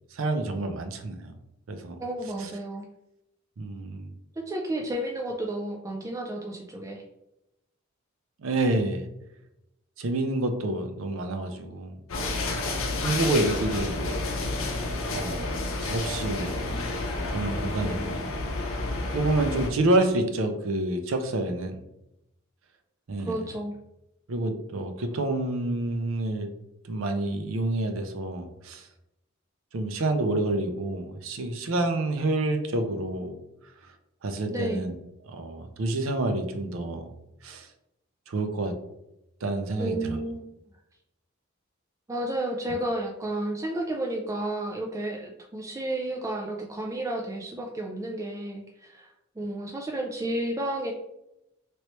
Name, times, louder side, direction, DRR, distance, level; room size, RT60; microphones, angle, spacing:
voice 1, 0.1-1.3 1.7-2.0 3.6-4.1 8.4-9.1 10.0-12.0 13.0-14.2 14.6-14.8 15.1-16.7 17.3-18.2 18.8-21.8 23.1-23.4 24.3-26.5 26.8-28.9 29.7-33.4 34.2-35.0 35.3-37.1 37.4-37.7 38.3-38.8 39.4-40.2, right 2 dB, 75° right, 6 dB, 0.5 m, -28 dB
voice 2, 2.0-2.9 4.4-7.0 17.6-18.1 23.3-23.8 34.5-35.0 39.8-40.4 42.1-50.9, right 1 dB, 15° right, 0 dB, 0.3 m, -32 dB
sound 1, 12.1-19.7, left 2 dB, 80° left, 0.6 m, -30 dB
3.1 x 3.0 x 2.9 m, 0.86 s
head